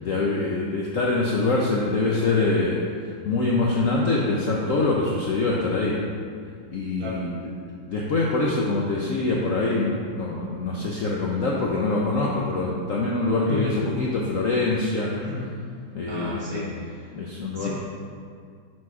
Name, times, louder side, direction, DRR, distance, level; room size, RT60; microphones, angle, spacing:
voice 1, 0.0-2.8 3.0-6.0 6.7-7.4 7.9-15.1 15.9-16.6 17.1-17.7, left 3 dB, 65° left, -3 dB, 0.8 m, -24 dB
voice 2, 16.1-17.1 17.5-17.7, left 2 dB, 50° right, -6 dB, 2.0 m, -33 dB
5.9 x 5.0 x 4.7 m, 2.1 s
omnidirectional pair, 2.0 m